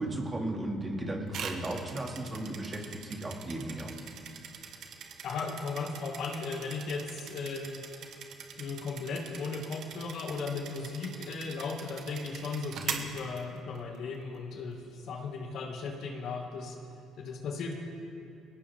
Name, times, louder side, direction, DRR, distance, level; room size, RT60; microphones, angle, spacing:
voice 1, 0.0-3.9, right 1 dB, 25° right, 0 dB, 2.5 m, -35 dB
sound 1, 1.3-14.0, right 7 dB, 65° right, 1.5 m, -43 dB
voice 2, 5.2-7.8 8.6-16.8 17.2-17.7, left 4 dB, 65° left, 1 dB, 2.2 m, -36 dB
20.0 x 17.0 x 3.7 m, 2.7 s
cardioid pair, 95°, 0 cm